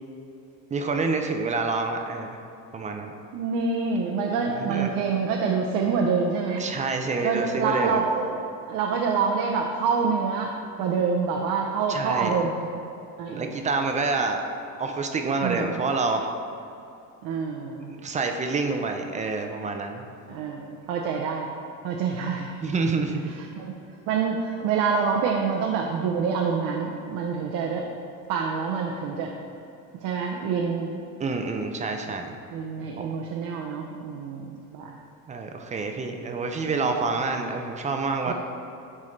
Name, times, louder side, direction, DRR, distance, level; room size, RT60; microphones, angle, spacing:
voice 1, 0.7-2.4 2.7-3.1 4.5-4.9 6.6-8.0 11.9-12.4 13.3-14.4 14.8-16.3 18.0-20.0 22.6-23.4 31.2-32.4 33.0-33.1 35.3-38.3, right 3 dB, 20° right, 4 dB, 0.4 m, -27 dB
voice 2, 3.3-6.7 7.2-12.7 13.2-13.6 15.4-15.8 17.2-17.9 20.3-22.6 23.6-23.7 24.1-27.9 28.3-29.3 30.0-31.0 32.5-35.0 36.7-36.9 38.3-38.4, right 5 dB, 70° right, 0 dB, 0.7 m, -27 dB
10.5 x 3.7 x 3.2 m, 2.6 s
cardioid pair, 130°, 35 cm